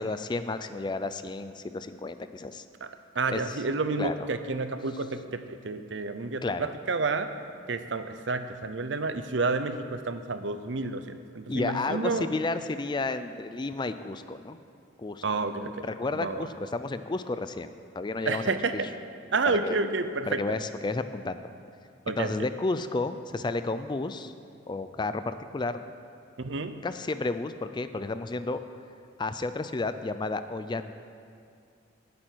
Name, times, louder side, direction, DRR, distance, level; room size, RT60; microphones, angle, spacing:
voice 1, 0.0-2.6 3.3-3.6 4.0-4.3 6.4-6.7 11.5-14.6 15.0-15.2 15.8-18.6 19.5-19.8 20.3-21.4 22.1-24.3 24.7-25.8 26.8-28.6 29.2-30.9, left 3 dB, 25° left, 11 dB, 0.4 m, -32 dB
voice 2, 3.1-7.3 7.7-12.3 15.2-16.5 18.3-18.7 19.3-20.6 22.1-22.3 26.4-26.8, right 3 dB, 65° right, 9 dB, 0.7 m, -30 dB
18.5 x 8.6 x 4.6 m, 2.4 s
head